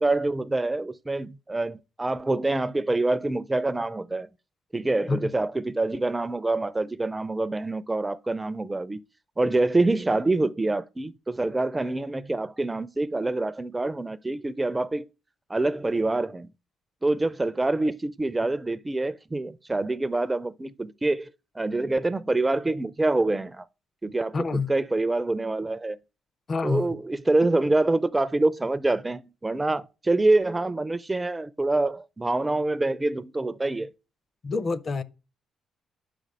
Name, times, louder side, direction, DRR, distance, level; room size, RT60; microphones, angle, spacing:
voice 1, 0.0-4.3 4.7-9.0 9.4-15.0 15.5-16.5 17.0-21.3 21.6-23.6 24.0-26.0 26.6-33.9, right 2 dB, 15° right, 0.4 m, -26 dB
voice 2, 24.3-24.7 26.5-26.9 34.4-35.0, left 4 dB, 40° left, 0.6 m, -27 dB
5.6 x 5.1 x 5.3 m
cardioid pair, 90°, 0 cm